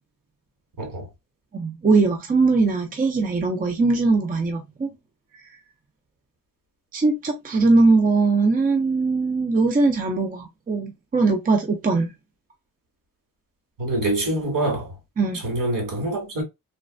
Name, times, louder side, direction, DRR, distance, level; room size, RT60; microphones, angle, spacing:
voice 1, 0.8-1.1 13.8-15.0 15.3-16.4, right 1 dB, 65° right, 2.1 m, -25 dB
voice 2, 1.5-4.9 6.9-12.1 15.2-15.4, right 3 dB, 25° right, 0.5 m, -20 dB
3.2 x 3.1 x 2.4 m
wide cardioid pair, 175°, 34 cm